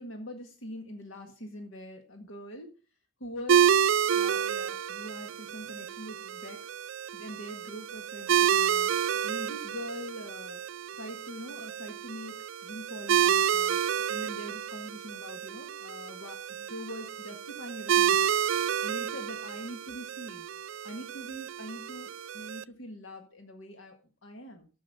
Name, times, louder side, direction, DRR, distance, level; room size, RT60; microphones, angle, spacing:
voice 1, 0.0-2.7 3.2-3.8 4.1-6.7 7.1-10.6 10.9-13.8 14.1-18.3 18.8-20.5 20.8-24.7, equal, 80° left, 4 dB, 1.8 m, -43 dB
sound 1, 3.5-22.6, right 9 dB, 75° right, 0.4 m, -29 dB
13.5 x 5.6 x 5.5 m, 0.34 s
head